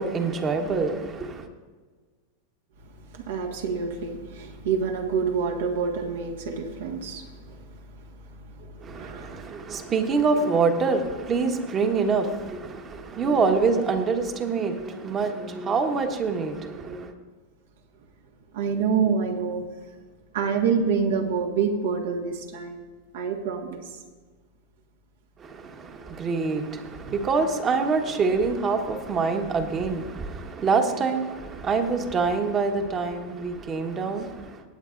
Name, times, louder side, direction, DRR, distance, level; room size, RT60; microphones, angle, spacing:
voice 1, 0.0-1.5 8.8-17.1 25.4-34.6, right 4 dB, 30° right, 1.3 m, -26 dB
voice 2, 3.1-7.6 8.4-9.4 18.5-19.7 20.3-22.8 23.1-23.8 27.0-27.1, right 6 dB, 70° right, 1.7 m, -27 dB
18.0 x 8.4 x 2.6 m
hypercardioid pair, 100°, 0 cm